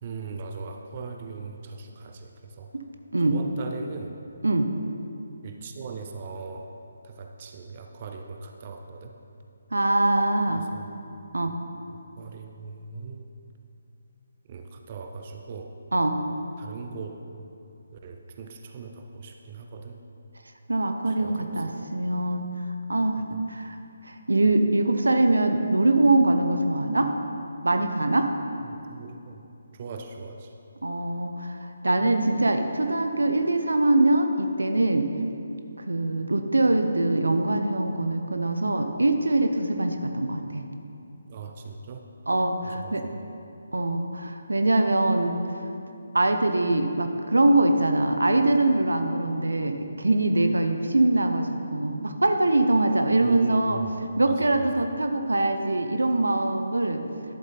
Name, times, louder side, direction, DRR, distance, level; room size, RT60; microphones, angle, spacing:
voice 1, 0.0-2.7 3.3-4.1 4.5-4.6 5.4-6.7 7.0-9.1 10.5-10.9 11.5-11.6 11.9-13.3 14.5-15.8 16.6-17.2 18.0-20.0 21.1-21.9 23.2-23.4 28.6-29.4 29.7-30.5 41.3-42.0 42.6-43.2 53.2-53.9 54.2-54.6, right 4 dB, 35° right, 4 dB, 0.6 m, -40 dB
voice 2, 9.7-10.7 11.3-11.5 15.9-16.2 20.7-22.5 22.9-23.8 24.0-27.1 27.6-28.3 30.8-35.1 35.9-40.6 42.3-43.0 43.7-45.6 46.1-53.8 54.2-57.0, right 2 dB, 75° right, 6 dB, 0.7 m, -23 dB
11.0 x 7.3 x 4.0 m, 2.7 s
figure-of-eight pair, 145°, 0 cm